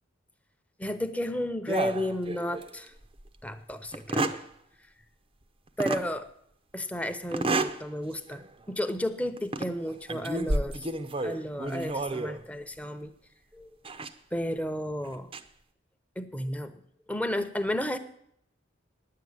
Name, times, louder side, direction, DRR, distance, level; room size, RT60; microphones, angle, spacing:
voice 1, 0.8-2.9 3.4-4.4 5.8-6.3 6.7-10.9 11.2-13.1 13.5-13.7 14.3-15.3 16.2-16.8 17.1-18.0, left 1 dB, 5° left, 8 dB, 0.8 m, -32 dB
sound 1, 1.7-2.7 3.2-3.3 3.9-4.5 5.8-6.1 7.3-7.8 8.3-8.5 9.4-9.7 10.1-12.4 13.8-14.1 15.1-15.4, right 2 dB, 30° right, 0.7 m, -30 dB
10.0 x 8.6 x 9.4 m, 0.72 s
head